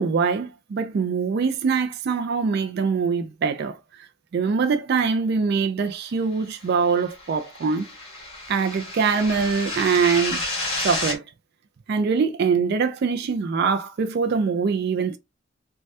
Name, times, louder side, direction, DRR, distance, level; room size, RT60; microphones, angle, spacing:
voice 1, 0.0-3.8 4.3-7.9 8.5-10.4 10.8-11.2 11.9-15.2, right 5 dB, 55° right, 0.3 m, -23 dB
sound 1, 6.7-11.2, left 2 dB, 30° left, 1.4 m, -31 dB
3.2 x 2.2 x 2.7 m
head